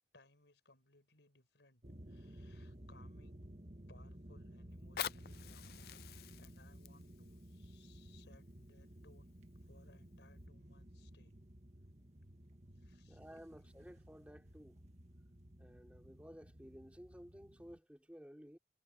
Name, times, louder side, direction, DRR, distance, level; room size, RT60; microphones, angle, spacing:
voice 1, 0.1-1.8 2.1-3.5 3.9-6.0 6.4-11.3 12.7-13.7, left 3 dB, 90° left, 5.2 m, -67 dB
sound 1, 1.8-17.8, right 1 dB, 40° right, 2.0 m, -55 dB
Fire, 4.7-9.7 10.3-10.4, left 9 dB, 60° left, 0.5 m, -48 dB
voice 2, 13.1-14.8 15.6-18.6, equal, 5° right, 3.9 m, -55 dB
head